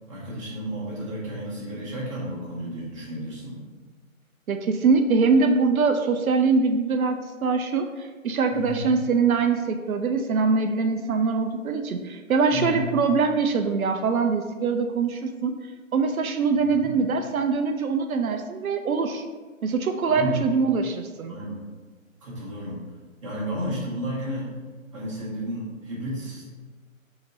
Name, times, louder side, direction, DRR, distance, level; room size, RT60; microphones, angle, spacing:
voice 1, 0.1-3.6 8.5-8.9 12.5-12.8 16.7-16.9 20.0-20.5 21.3-21.7 22.2-22.8 23.2-24.5 24.9-26.4, equal, 25° right, -7 dB, 1.0 m, -32 dB
voice 2, 4.5-15.6 15.9-19.2 19.6-21.3, right 4 dB, 80° right, 5 dB, 0.5 m, -23 dB
4.3 x 2.9 x 3.8 m, 1.4 s
figure-of-eight pair, 155°, 42 cm